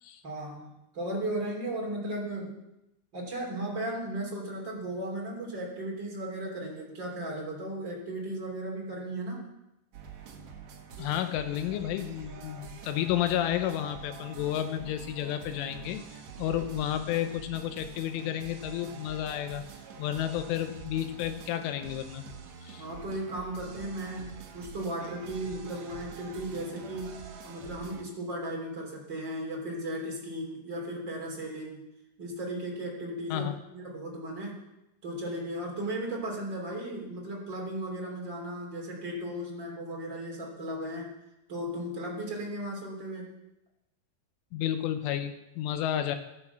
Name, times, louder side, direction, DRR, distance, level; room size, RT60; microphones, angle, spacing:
voice 1, 0.2-2.6 3.1-9.5 22.8-31.8 32.2-34.6 35.0-41.1 41.5-43.3, right 1 dB, 30° right, -1 dB, 2.9 m, -36 dB
sound 1, 9.9-28.0, right 6 dB, 80° right, 1.5 m, -46 dB
voice 2, 11.0-16.0 16.4-19.7 20.0-22.2 22.7-22.8 33.3-33.5 44.5-46.2, left 11 dB, 85° left, 8 dB, 3.3 m, -31 dB
14.5 x 9.1 x 7.1 m, 0.91 s
omnidirectional pair, 5.6 m